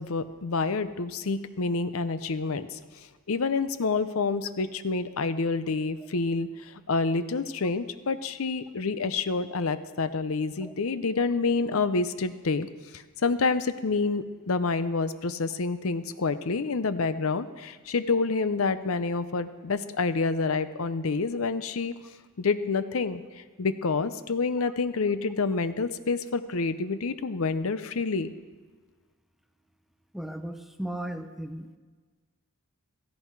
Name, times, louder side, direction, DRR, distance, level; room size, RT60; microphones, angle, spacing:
voice 1, 0.0-2.8 3.3-12.7 12.9-21.9 22.4-28.3, left 4 dB, 65° left, 13 dB, 0.6 m, -28 dB
voice 2, 30.1-31.7, right 1 dB, ahead, 8 dB, 0.7 m, -36 dB
16.5 x 14.0 x 4.6 m, 1.4 s
head